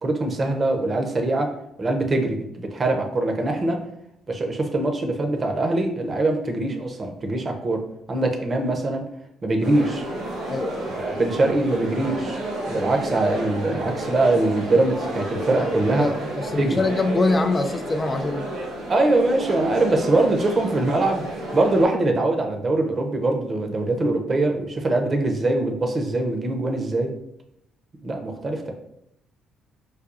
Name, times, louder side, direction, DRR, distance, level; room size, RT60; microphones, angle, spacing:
voice 1, 0.0-1.5 1.8-3.8 4.3-7.8 8.1-9.0 9.4-10.0 10.9-12.4 12.7-16.1 16.6-16.8 18.9-21.2 21.5-27.1 28.0-28.7, right 2 dB, 40° right, 4 dB, 0.7 m, -22 dB
sound 1, 9.6-21.8, right 1 dB, 90° right, 1.1 m, -31 dB
voice 2, 10.5-10.9 16.0-18.5, left 2 dB, 30° left, 7 dB, 0.3 m, -24 dB
4.7 x 2.3 x 2.5 m, 0.80 s
supercardioid pair, 65°, 0 cm